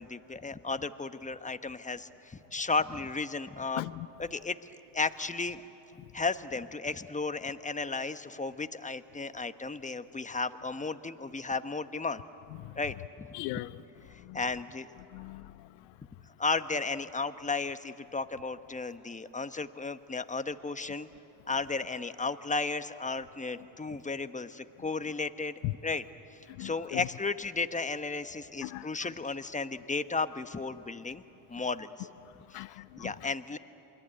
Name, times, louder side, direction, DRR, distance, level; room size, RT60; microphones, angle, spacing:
voice 1, 0.0-3.8 4.2-4.6 4.9-5.6 6.1-12.2 12.8-13.3 14.3-14.9 16.4-21.1 21.5-26.0 26.6-31.2 31.5-32.1 32.5-32.6 33.0-33.6, left 4 dB, 15° left, 10 dB, 1.1 m, -34 dB
voice 2, 3.8-4.1 12.6-12.8 13.3-13.7 14.2-14.4 15.1-15.7 25.6-25.7 26.5-27.1 28.6-29.1 32.5-33.3, left 20 dB, 90° left, 16 dB, 0.6 m, -39 dB
28.0 x 21.5 x 9.0 m, 3.0 s
supercardioid pair, 55°, 49 cm